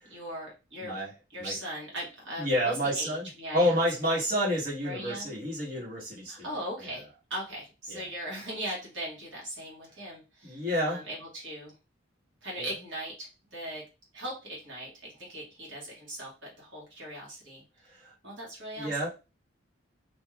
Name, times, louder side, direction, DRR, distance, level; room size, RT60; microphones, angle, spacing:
voice 1, 0.0-1.0 1.3-2.5 2.9-3.8 4.8-5.4 6.3-7.0 7.3-11.7 12.4-13.8 14.1-17.6 18.2-18.9, right 1 dB, 70° right, -3 dB, 1.2 m, -39 dB
voice 2, 0.8-1.1 1.4-1.5 2.4-3.3 3.5-6.5 6.8-6.9 7.9-8.0 10.4-11.0 12.6-12.7 17.9-18.1 18.8-19.1, equal, 45° right, -6 dB, 1.3 m, -29 dB
3.1 x 2.4 x 2.3 m, 0.29 s
head